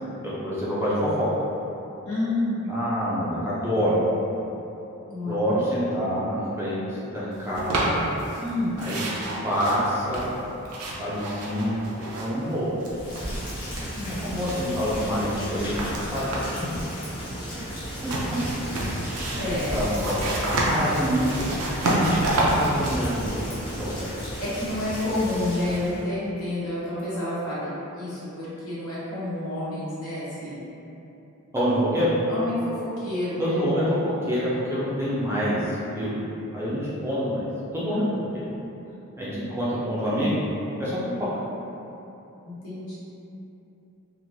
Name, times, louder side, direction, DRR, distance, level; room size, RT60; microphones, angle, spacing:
voice 1, 0.2-1.3 2.7-4.0 5.3-7.9 8.8-9.0 9.4-10.3 11.0-12.7 14.2-16.3 19.3-19.4 19.7-20.2 20.5-21.5 22.5-23.4 23.8-23.9 31.5-32.1 33.4-37.5 37.7-38.1 38.3-38.4 39.2-40.4 40.8-41.3, equal, 10° right, -9 dB, 0.5 m, -26 dB
voice 2, 2.0-2.6 5.1-5.5 8.4-8.8 13.9-14.2 16.6-16.8 19.3-19.8 24.4-27.7 27.9-30.7 32.3-33.6 37.9-38.2 42.6-43.0, left 1 dB, 70° left, -10 dB, 1.1 m, -29 dB
sound 1, 7.5-8.5 8.8-12.5 12.8-14.2 14.5-16.7 17.9-24.1, right 1 dB, 75° right, 0.5 m, -29 dB
Rain, 12.8-26.0, equal, 20° left, 0.7 m, -35 dB
3.1 x 2.5 x 2.6 m, 3.0 s
head